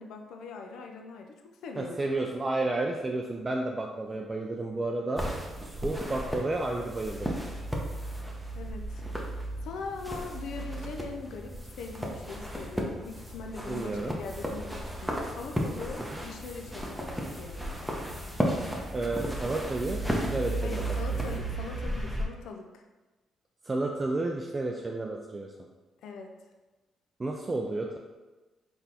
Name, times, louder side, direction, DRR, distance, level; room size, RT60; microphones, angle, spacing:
voice 1, 0.0-2.1 8.6-9.0 9.6-17.7 20.6-22.8 26.0-26.3, left 4 dB, 80° left, 3 dB, 0.4 m, -41 dB
voice 2, 1.8-5.3 5.6-7.4 13.7-14.2 18.9-20.8 21.1-21.2 23.7-25.5 27.2-28.0, right 2 dB, 25° right, 0 dB, 0.3 m, -31 dB
sound 1, 5.2-22.2, right 1 dB, ahead, 0.7 m, -34 dB
4.0 x 3.4 x 2.8 m, 1.2 s
cardioid pair, 90°, 0 cm